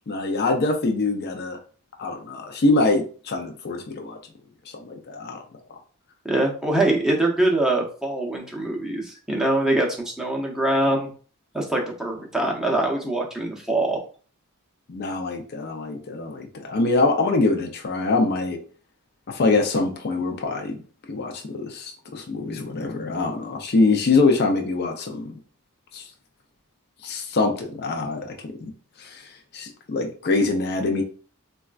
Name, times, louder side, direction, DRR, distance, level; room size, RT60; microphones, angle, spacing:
voice 1, 0.1-1.6 2.0-4.2 4.8-5.4 6.8-6.9 14.9-18.6 19.3-20.8 21.1-25.3 25.9-26.0 27.0-28.3 28.6-28.7 29.0-29.2 29.5-31.0, left 3 dB, 45° left, 3 dB, 0.5 m, -24 dB
voice 2, 6.2-11.1 11.5-14.0, right 1 dB, 5° right, -1 dB, 0.6 m, -23 dB
4.1 x 2.3 x 2.4 m, 0.41 s
head